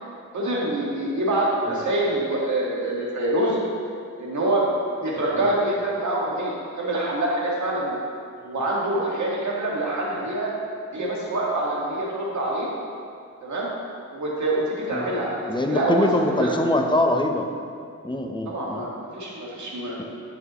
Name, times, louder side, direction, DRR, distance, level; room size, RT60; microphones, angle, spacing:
voice 1, 0.3-3.6 4.2-4.7 5.0-8.0 8.4-10.5 10.9-12.7 13.4-13.7 14.1-16.1 16.4-16.5 18.5-20.0, right 1 dB, 65° right, -4 dB, 2.0 m, -25 dB
voice 2, 15.5-17.5 18.0-18.8, left 1 dB, 15° left, 3 dB, 0.8 m, -23 dB
10.5 x 6.3 x 3.1 m, 2.4 s
cardioid pair, 65°, 30 cm